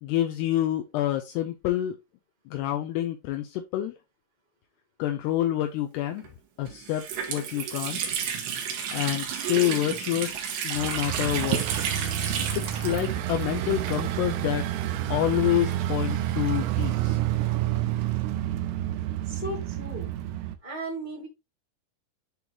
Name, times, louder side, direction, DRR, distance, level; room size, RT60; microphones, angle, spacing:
voice 1, 0.0-2.0 2.5-3.9 5.0-6.2 6.6-8.2 8.9-11.6 12.6-14.6 15.1-17.2, left 13 dB, 85° left, 4 dB, 2.4 m, -28 dB
Water tap faucet, 6.2-6.3 6.7-14.4 14.6-14.7 15.6-17.1, right 7 dB, 70° right, 3.5 m, -33 dB
sound 1, 10.8-20.6, right 13 dB, 85° right, 2.4 m, -29 dB
voice 2, 19.2-20.1 20.6-21.3, right 1 dB, 60° left, -2 dB, 0.4 m, -36 dB
10.5 x 4.0 x 2.9 m, 0.22 s
omnidirectional pair, 5.6 m